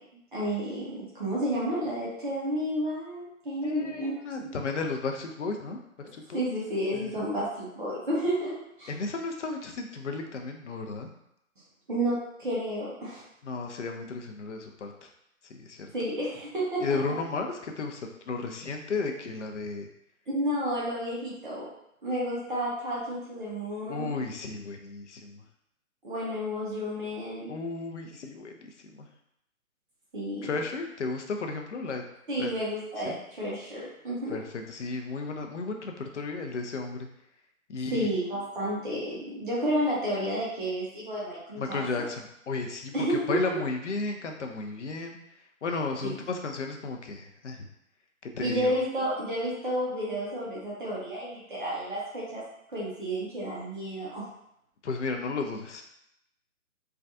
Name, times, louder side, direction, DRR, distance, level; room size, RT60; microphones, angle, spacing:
voice 1, 0.3-4.1 6.3-8.9 11.9-13.2 15.9-16.8 20.3-21.7 22.0-24.1 26.0-27.5 30.1-30.5 32.3-34.4 37.9-41.8 42.9-43.4 48.4-52.4 52.7-54.2, equal, 35° right, -6 dB, 0.8 m, -31 dB
voice 2, 3.6-6.5 6.9-7.1 8.9-11.1 13.4-15.1 15.4-15.9 16.8-19.9 23.9-25.4 27.5-29.1 30.4-32.0 32.4-32.5 33.0-33.2 34.3-37.1 37.7-38.1 41.6-45.2 45.6-47.7 48.2-48.7 54.8-55.8, left 3 dB, 55° left, 4 dB, 0.5 m, -34 dB
3.3 x 2.3 x 2.6 m, 0.79 s
figure-of-eight pair, 145°, 43 cm